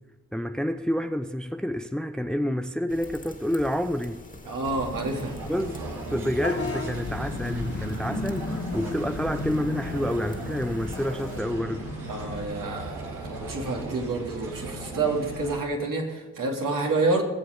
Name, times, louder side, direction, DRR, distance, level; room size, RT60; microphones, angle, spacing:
voice 1, 0.3-4.2 5.5-5.8 6.1-11.9, equal, ahead, 0.7 m, -28 dB
sound 1, 2.9-11.4, left 2 dB, 20° left, 2.4 m, -46 dB
voice 2, 4.4-5.4 12.1-17.2, right 3 dB, 60° right, 2.9 m, -28 dB
sound 2, 4.6-15.6, right 2 dB, 80° right, 2.4 m, -37 dB
Vehicle horn car horn honking / Bus, 6.3-12.4, left 4 dB, 40° left, 2.0 m, -35 dB
20.0 x 7.8 x 5.3 m
hypercardioid pair, 40°, 37 cm